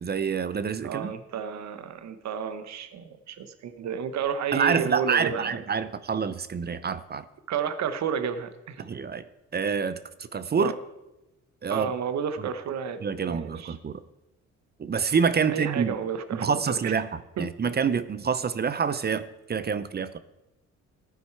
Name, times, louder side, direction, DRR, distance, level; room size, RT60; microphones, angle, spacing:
voice 1, 0.0-1.1 4.5-7.2 8.8-9.3 9.5-10.0 10.3-10.7 11.6-11.9 13.0-14.0 14.8-16.0 16.3-20.2, right 6 dB, 35° right, 15 dB, 0.6 m, -27 dB
voice 2, 0.8-5.5 7.5-8.8 10.6-10.7 11.7-13.8 15.5-17.0 17.4-17.5, right 7 dB, 65° right, 12 dB, 1.1 m, -31 dB
14.5 x 9.2 x 4.6 m, 0.96 s
cardioid pair, 90°, 30 cm